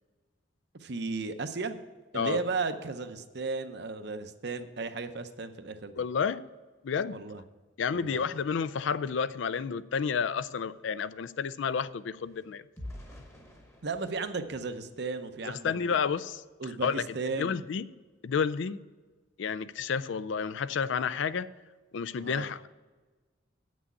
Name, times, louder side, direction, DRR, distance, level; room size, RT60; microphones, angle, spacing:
voice 1, 0.7-1.8 2.1-5.9 7.1-7.4 7.9-8.2 13.8-15.7 16.6-17.6 22.2-22.5, right 4 dB, 55° right, 0.7 m, -35 dB
voice 2, 6.0-6.4 6.8-7.2 7.8-12.6 15.4-16.4 16.8-17.0 17.4-17.9 18.2-18.8 19.4-21.5 21.9-22.7, left 6 dB, 70° left, 0.4 m, -30 dB
sound 1, 10.7-15.7 16.2-16.4 16.7-17.0, left 1 dB, 15° left, 1.1 m, -50 dB
8.4 x 6.2 x 8.1 m
head